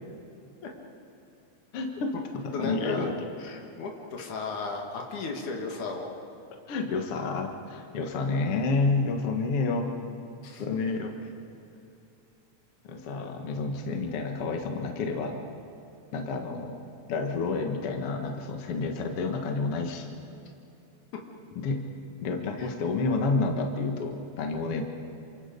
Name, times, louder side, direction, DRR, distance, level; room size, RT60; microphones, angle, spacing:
voice 1, 1.7-3.1 6.7-9.9 10.6-11.1 12.8-15.4 16.1-16.8 17.1-20.1 21.6-21.9 22.2-24.8, left 3 dB, 55° left, 3 dB, 2.4 m, -29 dB
voice 2, 2.5-3.1 3.4-6.2 10.4-10.6 22.6-22.7, left 4 dB, 85° left, 1 dB, 3.4 m, -35 dB
28.0 x 27.0 x 5.3 m, 2.7 s
omnidirectional pair, 3.4 m